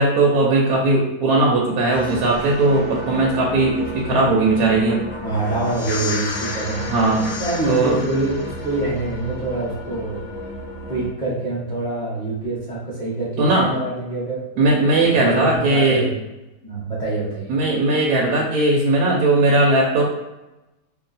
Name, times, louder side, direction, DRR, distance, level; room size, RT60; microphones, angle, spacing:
voice 1, 0.0-5.0 6.9-7.3 7.7-8.0 13.4-13.7 14.6-16.1 17.5-20.0, right 2 dB, 80° right, -2 dB, 1.1 m, -18 dB
sound 1, 1.9-11.1, left 1 dB, 65° left, 1.3 m, -31 dB
voice 2, 5.2-6.9 7.4-10.2 10.9-14.6 15.0-16.2 16.6-17.5, right 2 dB, 5° left, -8 dB, 0.8 m, -25 dB
2.9 x 2.4 x 3.9 m, 1.0 s
omnidirectional pair, 1.6 m